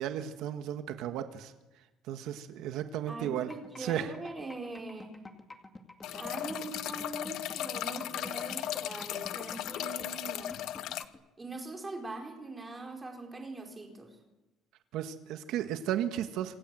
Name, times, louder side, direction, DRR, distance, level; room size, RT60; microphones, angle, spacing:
voice 1, 0.0-1.5 2.1-3.5 3.8-4.1 14.9-16.5, right 10 dB, 70° right, 7 dB, 1.8 m, -34 dB
voice 2, 3.1-5.2 6.1-10.6 11.4-14.2, right 3 dB, 15° right, 2 dB, 4.6 m, -42 dB
sound 1, 3.3-11.2, left 2 dB, 10° left, 2.2 m, -48 dB
sound 2, 6.0-11.0, left 13 dB, 65° left, 1.2 m, -36 dB
27.0 x 26.0 x 7.8 m, 1.1 s
cardioid pair, 170°, 0 cm